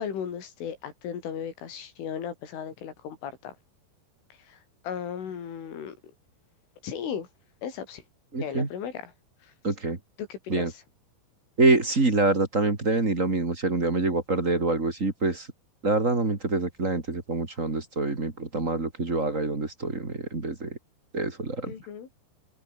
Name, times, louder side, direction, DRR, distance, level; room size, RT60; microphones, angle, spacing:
voice 1, 0.0-3.5 4.4-4.6 4.8-6.0 6.8-7.3 7.6-8.0 8.4-9.1 9.4-9.5 10.2-10.8 21.7-22.1, left 8 dB, 90° left, 6.5 m, -36 dB
voice 2, 8.3-8.7 9.6-10.0 10.5-10.7 11.6-15.5 15.8-20.8 21.1-21.7, right 3 dB, 20° right, 2.2 m, -26 dB
open air
omnidirectional pair, 5.5 m